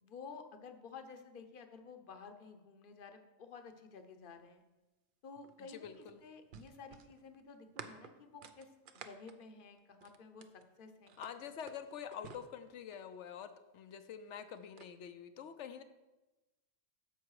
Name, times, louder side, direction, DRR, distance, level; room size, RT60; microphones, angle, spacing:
voice 1, 0.0-4.6 5.2-8.7 8.9-10.4 10.8-11.1 11.4-11.5, left 5 dB, 50° left, 7 dB, 1.0 m, -52 dB
sound 1, 5.4-10.6 11.1-13.2 14.1-14.9, right 6 dB, 55° right, 0.7 m, -53 dB
voice 2, 5.6-6.2 11.2-15.8, left 8 dB, 80° left, 10 dB, 1.0 m, -47 dB
10.5 x 7.0 x 4.8 m, 1.1 s
omnidirectional pair, 1.2 m